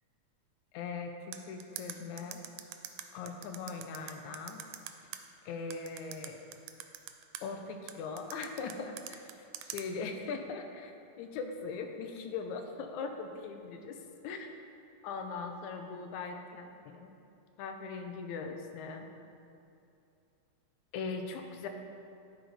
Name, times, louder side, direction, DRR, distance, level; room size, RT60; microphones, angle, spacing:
voice 1, 0.7-2.4 3.1-4.6 5.5-6.4 7.4-9.3 9.6-14.0 14.2-14.5 15.0-17.1 17.6-19.1 20.9-21.7, left 4 dB, 85° left, 5 dB, 2.0 m, -40 dB
sound 1, 1.3-5.2 5.7-7.4 7.9-9.8, right 12 dB, 80° right, 1.7 m, -43 dB
11.5 x 3.9 x 4.8 m, 2.6 s
omnidirectional pair, 3.3 m